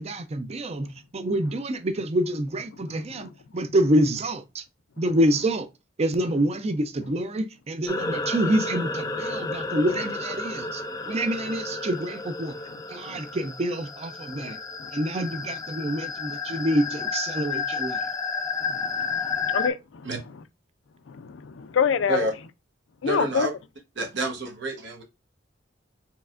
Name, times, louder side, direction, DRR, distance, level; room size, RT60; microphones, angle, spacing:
voice 1, 0.0-4.6 5.0-5.7 6.0-12.6 12.9-14.6 14.9-18.0, right 1 dB, 35° right, 0.5 m, -27 dB
voice 2, 2.9-3.3 9.3-9.5 12.7-13.2 14.3-14.5 14.8-14.9 15.9-16.0 16.3-16.6 18.6-20.1 21.1-22.3 23.0-23.5, left 6 dB, 75° left, 0.4 m, -29 dB
sound 1, 7.9-19.7, left 4 dB, 20° left, 0.4 m, -31 dB
voice 3, 23.0-23.5 24.0-25.0, right 2 dB, 65° right, 1.0 m, -29 dB
4.6 x 3.2 x 2.4 m
head